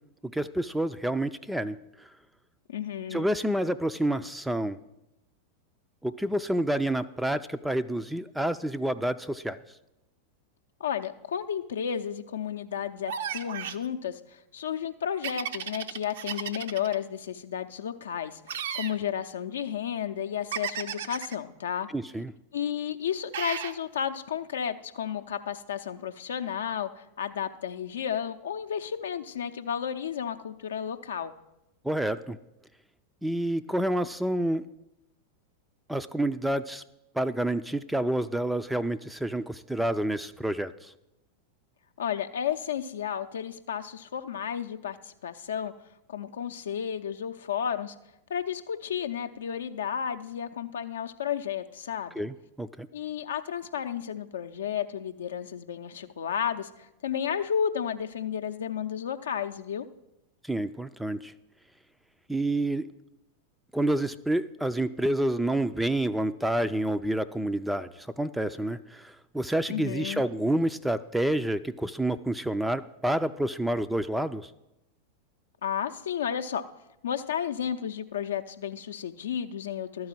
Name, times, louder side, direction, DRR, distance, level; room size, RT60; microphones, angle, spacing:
voice 1, 0.3-1.8 3.1-4.8 6.0-9.6 21.9-22.3 31.8-32.4 33.2-34.6 35.9-36.8 37.2-40.9 52.2-52.9 60.5-61.3 62.3-62.9 63.7-74.5, right 1 dB, 5° right, 12 dB, 0.4 m, -28 dB
voice 2, 2.7-3.3 10.8-14.2 14.5-21.9 22.5-31.3 42.0-45.7 46.1-47.9 48.3-52.2 52.9-56.7 57.0-59.9 69.7-70.2 75.6-76.6 77.0-80.1, left 8 dB, 65° left, 9 dB, 0.6 m, -32 dB
sound 1, 13.1-13.8 15.2-17.0 18.5-19.0 20.5-21.4 23.3-23.8, right 8 dB, 60° right, 0.5 m, -34 dB
12.5 x 4.8 x 7.5 m, 0.90 s
figure-of-eight pair, 90°, 0 cm